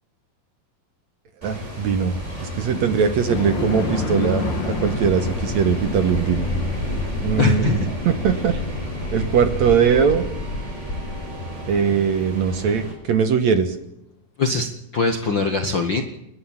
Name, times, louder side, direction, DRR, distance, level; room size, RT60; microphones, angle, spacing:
sound 1, 1.4-12.9, left 1 dB, 20° right, 6.2 m, -31 dB
voice 1, 1.4-2.1 2.4-6.5 7.2-8.6 9.1-10.3 11.7-13.8, right 7 dB, 60° right, 10 dB, 2.2 m, -21 dB
sound 2, 3.3-11.8, left 3 dB, 40° left, 2.2 m, -29 dB
voice 2, 7.4-7.9 14.4-16.0, left 4 dB, 55° left, 6 dB, 1.3 m, -21 dB
30.0 x 12.0 x 7.4 m, 0.84 s
omnidirectional pair, 4.2 m